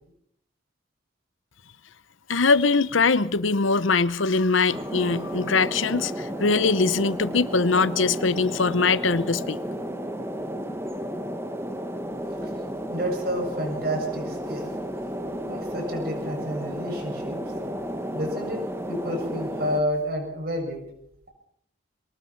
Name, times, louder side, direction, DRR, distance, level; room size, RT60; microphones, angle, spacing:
voice 1, 2.3-9.6, left 4 dB, 85° left, 0.9 m, -22 dB
sound 1, 4.7-19.8, equal, 15° right, 1.4 m, -33 dB
voice 2, 12.9-14.8 15.4-17.6 18.1-20.8, equal, 50° right, 7.0 m, -30 dB
23.0 x 19.5 x 5.9 m
head